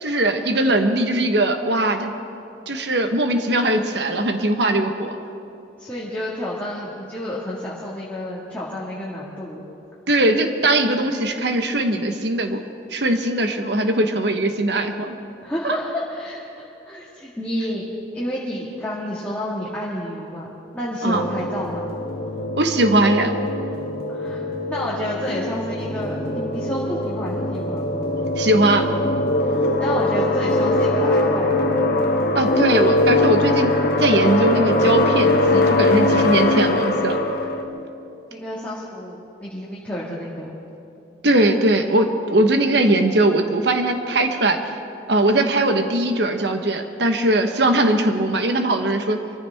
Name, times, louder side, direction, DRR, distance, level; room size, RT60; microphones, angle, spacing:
voice 1, 0.0-2.1 2.7-5.2 10.1-12.6 12.9-15.1 15.6-15.8 21.0-21.2 22.6-23.3 28.4-28.9 32.3-33.7 34.0-37.2 41.2-44.6 45.1-49.2, right 1 dB, 60° right, 6 dB, 1.2 m, -20 dB
voice 2, 5.8-9.6 15.4-17.9 18.1-20.5 20.7-21.9 24.1-27.9 29.8-31.9 38.3-40.5, left 1 dB, 10° left, -8 dB, 1.9 m, -30 dB
sound 1, 21.1-37.6, left 2 dB, 50° left, 1.3 m, -21 dB
24.0 x 14.5 x 3.6 m, 2.7 s
head